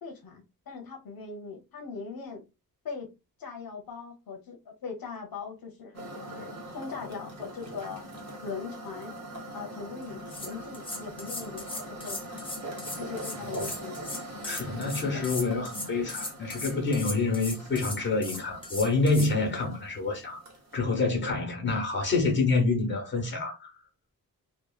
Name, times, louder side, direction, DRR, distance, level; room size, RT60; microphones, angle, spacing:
voice 1, 0.0-2.4 2.8-3.1 3.4-8.0 8.4-9.1 9.5-12.4 13.0-14.0 14.9-15.3, left 5 dB, 70° left, 0.7 m, -40 dB
sound 1, 5.9-20.8, right 1 dB, 45° right, 0.8 m, -42 dB
sound 2, 10.0-10.1 10.3-19.3, left 2 dB, 15° left, 0.5 m, -38 dB
voice 2, 14.4-20.4 20.7-23.7, left 3 dB, 30° left, 0.9 m, -27 dB
2.7 x 2.1 x 2.3 m
wide cardioid pair, 165°, 36 cm